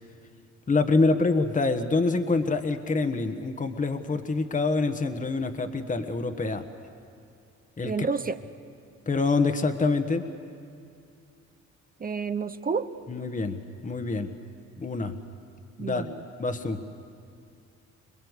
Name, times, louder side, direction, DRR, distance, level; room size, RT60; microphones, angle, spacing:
voice 1, 0.7-6.6 7.8-8.1 9.1-10.2 13.1-14.3 14.8-15.2 15.8-16.0 16.4-16.8, left 3 dB, 25° left, 7 dB, 1.3 m, -26 dB
voice 2, 7.8-8.4 12.0-12.9 15.8-16.1, right 5 dB, 30° right, 11 dB, 0.8 m, -29 dB
27.0 x 20.5 x 8.2 m, 2.4 s
cardioid pair, 90°, 30 cm